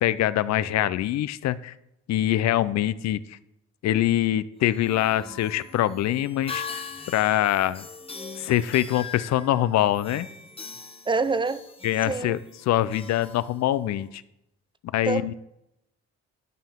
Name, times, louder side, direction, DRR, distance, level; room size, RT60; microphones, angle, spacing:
voice 1, 0.0-1.7 2.1-3.4 3.8-7.9 8.4-10.3 11.8-14.2 14.9-15.3, left 13 dB, 65° left, 0.4 m, -24 dB
sound 1, 4.5-14.1, left 5 dB, 20° left, 0.9 m, -41 dB
voice 2, 11.1-11.6 12.1-12.4 15.1-15.3, right 4 dB, 15° right, 0.4 m, -26 dB
11.5 x 5.6 x 3.6 m
cardioid pair, 90°, 30 cm